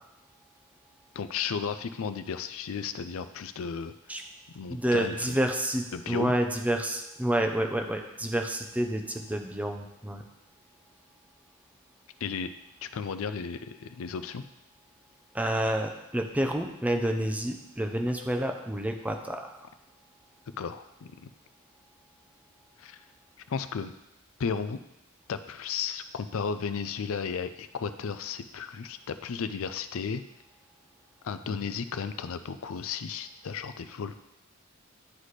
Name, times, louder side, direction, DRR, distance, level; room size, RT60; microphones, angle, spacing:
voice 1, 1.1-3.9 4.5-5.4 5.9-6.4 12.2-12.5 12.8-14.4 20.6-21.3 22.8-23.0 23.5-23.9 24.4-24.8 25.3-30.2 31.2-34.2, left 6 dB, 65° left, 11 dB, 0.4 m, -34 dB
voice 2, 4.7-10.2 15.3-19.4 31.5-31.6, right 1 dB, 5° right, 4 dB, 0.6 m, -29 dB
11.0 x 4.1 x 3.2 m, 0.90 s
head